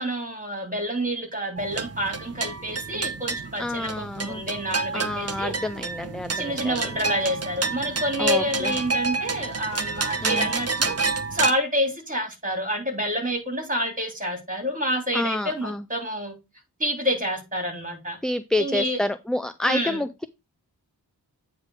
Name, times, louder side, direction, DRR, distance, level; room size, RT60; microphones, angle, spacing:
voice 1, 0.0-5.5 6.3-11.0 11.3-16.4 16.8-18.2 18.6-19.0 19.7-20.0, equal, 20° right, 3.0 m, -28 dB
sound 1, 1.6-11.5, right 4 dB, 40° right, 0.8 m, -29 dB
voice 2, 3.6-4.4 4.9-6.8 8.2-8.7 10.2-10.5 15.1-15.8 18.2-20.2, left 1 dB, ahead, 0.4 m, -28 dB
8.7 x 3.5 x 4.8 m
cardioid pair, 45°, 40 cm